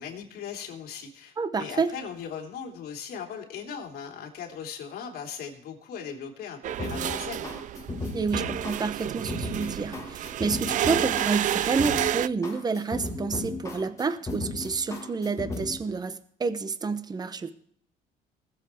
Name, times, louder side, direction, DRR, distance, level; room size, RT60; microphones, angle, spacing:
voice 1, 0.0-7.6, left 7 dB, 65° left, 1 dB, 3.2 m, -39 dB
voice 2, 1.4-1.9 8.1-17.5, right 4 dB, 25° right, 12 dB, 0.9 m, -29 dB
sound 1, 6.6-12.3, right 12 dB, 50° right, 0.4 m, -30 dB
sound 2, 6.8-15.8, left 2 dB, 20° left, 2.7 m, -35 dB
20.0 x 7.6 x 4.4 m, 0.63 s
cardioid pair, 110°, 17 cm